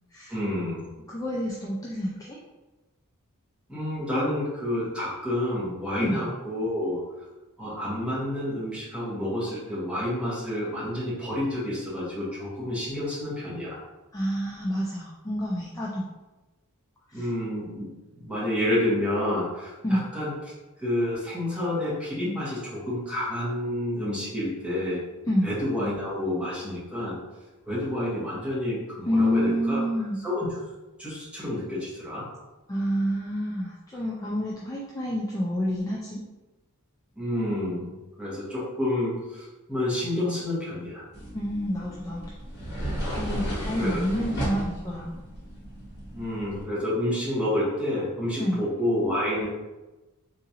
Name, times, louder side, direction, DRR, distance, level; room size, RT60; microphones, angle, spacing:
voice 1, 0.3-0.9 3.7-7.0 7.6-13.8 17.1-17.9 18.1-20.3 20.8-25.0 25.4-27.2 27.7-29.8 30.2-30.5 31.0-32.2 37.2-37.9 38.2-41.0 43.2-44.0 46.1-49.5, left 1 dB, 5° right, -9 dB, 1.2 m, -29 dB
voice 2, 1.1-2.4 6.0-6.2 14.1-16.0 17.1-17.3 19.8-20.0 25.3-25.5 29.1-30.2 32.7-36.2 41.3-42.2 43.1-45.1 48.4-48.6, equal, 15° left, -4 dB, 0.3 m, -28 dB
sound 1, 41.1-46.6, equal, 50° left, 1.2 m, -34 dB
3.8 x 2.5 x 2.8 m, 1.1 s
head